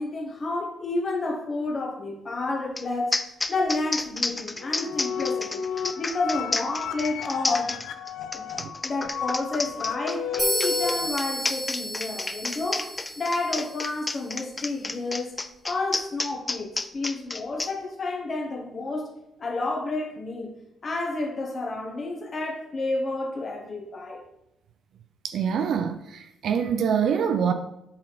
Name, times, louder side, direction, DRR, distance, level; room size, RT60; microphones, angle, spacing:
voice 1, 0.0-3.2 3.5-5.6 6.0-7.8 8.3-8.5 8.8-15.4 15.6-19.1 19.4-20.5 20.8-24.2, left 2 dB, 40° left, 1.3 m, -30 dB
sound 1, 2.8-2.9 3.1-17.7, left 3 dB, 20° left, 0.4 m, -30 dB
sound 2, 4.6-11.1, left 7 dB, 75° left, 0.5 m, -33 dB
sound 3, 10.4-14.2, equal, 20° right, 1.6 m, -32 dB
voice 2, 25.2-27.5, right 7 dB, 65° right, 0.5 m, -25 dB
7.6 x 4.4 x 4.0 m
cardioid pair, 90°, 0 cm